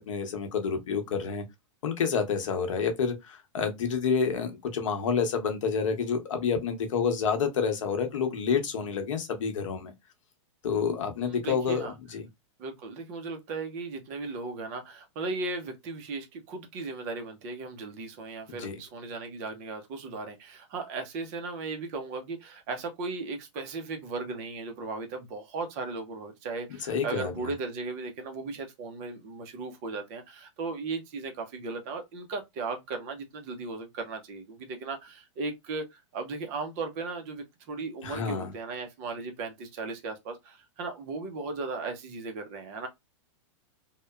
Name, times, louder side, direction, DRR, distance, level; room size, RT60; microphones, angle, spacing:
voice 1, 0.0-1.4 1.8-9.9 10.6-12.2 18.5-18.7 26.9-27.5 38.0-38.5, left 6 dB, 75° left, 0.8 m, -29 dB
voice 2, 11.2-11.9 12.6-42.9, right 3 dB, 30° right, 0.5 m, -36 dB
2.8 x 2.0 x 2.2 m
supercardioid pair, 165°, 16 cm